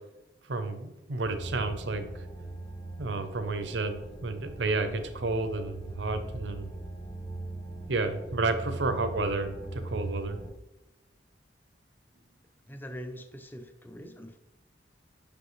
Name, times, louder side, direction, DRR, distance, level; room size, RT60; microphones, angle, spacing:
voice 1, 0.5-2.1 3.0-6.7 7.9-10.4, right 3 dB, 85° right, 8 dB, 0.8 m, -31 dB
sound 1, 1.2-10.5, right 2 dB, 25° left, 1.2 m, -40 dB
voice 2, 12.7-14.4, equal, 10° left, 7 dB, 0.5 m, -43 dB
6.4 x 5.2 x 3.2 m, 0.99 s
head